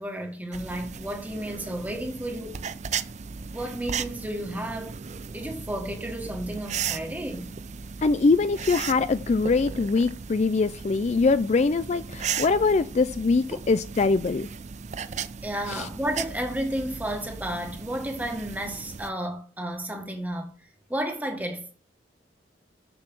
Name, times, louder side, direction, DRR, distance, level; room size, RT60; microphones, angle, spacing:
voice 1, 0.0-2.6 3.5-4.9 5.3-7.5 15.4-20.5 20.9-21.7, right 1 dB, 10° right, 1.6 m, -32 dB
sound 1, 0.5-19.1, right 6 dB, 40° right, 0.5 m, -36 dB
voice 2, 8.0-14.5 15.7-15.9, left 4 dB, 40° left, 0.4 m, -23 dB
7.0 x 6.8 x 6.1 m
head